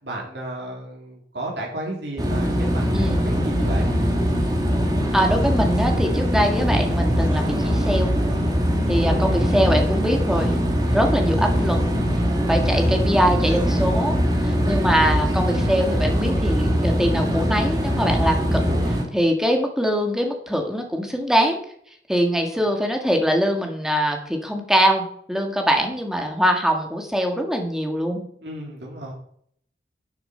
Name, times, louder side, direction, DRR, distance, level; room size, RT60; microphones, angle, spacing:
voice 1, 0.0-3.9 9.1-9.4 14.6-14.9 18.7-19.1 22.4-22.6 28.4-29.1, right 1 dB, 70° right, -1 dB, 3.2 m, -34 dB
sound 1, 2.2-19.0, equal, 20° right, 1.8 m, -21 dB
voice 2, 2.9-3.2 5.1-8.1 8.9-10.6 10.9-11.8 12.5-18.6 19.1-21.6 22.1-28.2, equal, 5° right, 3 dB, 1.7 m, -22 dB
12.0 x 7.5 x 4.4 m, 0.65 s
head